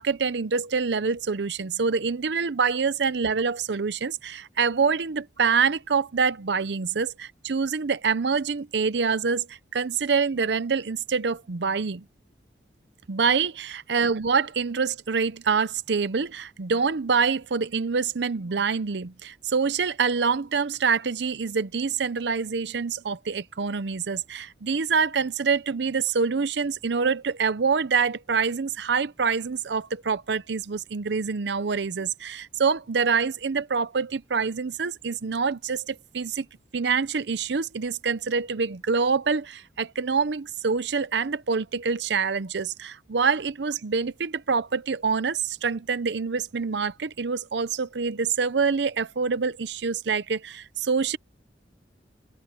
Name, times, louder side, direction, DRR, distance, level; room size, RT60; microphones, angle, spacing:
voice 1, 0.0-7.1 7.4-12.0 13.1-36.5 36.7-51.2, right 5 dB, 75° right, 0.6 m, -26 dB
head